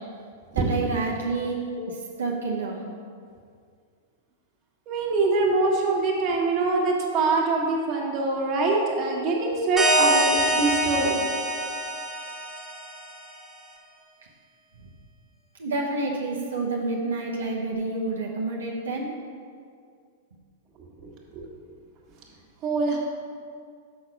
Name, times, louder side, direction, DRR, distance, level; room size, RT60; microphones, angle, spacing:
voice 1, 0.5-2.8 15.6-19.1, right 3 dB, 90° right, -2 dB, 0.9 m, -29 dB
voice 2, 4.9-11.2 22.6-23.0, right 3 dB, 40° right, -2 dB, 1.5 m, -24 dB
sound 1, 9.8-13.2, right 1 dB, 5° right, 1.2 m, -25 dB
6.4 x 4.2 x 5.8 m, 2.2 s
hypercardioid pair, 115°, 0 cm